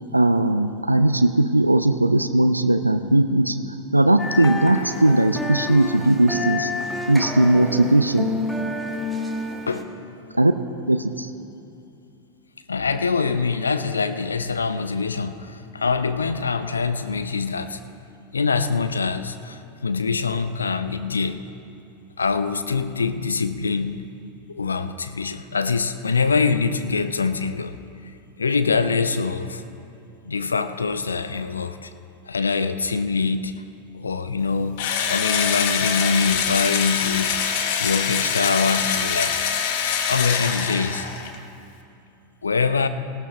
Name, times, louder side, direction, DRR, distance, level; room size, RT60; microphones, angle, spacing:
voice 1, 0.1-3.6 3.9-6.7 7.1-8.3 10.3-10.5 10.9-11.3, right 1 dB, 85° right, 10 dB, 0.4 m, -18 dB
sound 1, 4.2-9.8, left 2 dB, ahead, 1.3 m, -29 dB
voice 2, 12.7-17.8 18.3-21.4 22.2-24.0 24.5-27.8 28.4-29.6 30.2-31.9 32.3-33.6 33.9-37.4 37.7-39.3 40.1-41.1 42.4-42.9, left 4 dB, 75° left, 11 dB, 0.6 m, -24 dB
Engine / Drill, 34.8-41.4, left 7 dB, 55° left, 1.1 m, -24 dB
18.5 x 15.5 x 3.2 m, 2.7 s
figure-of-eight pair, 85°, 0 cm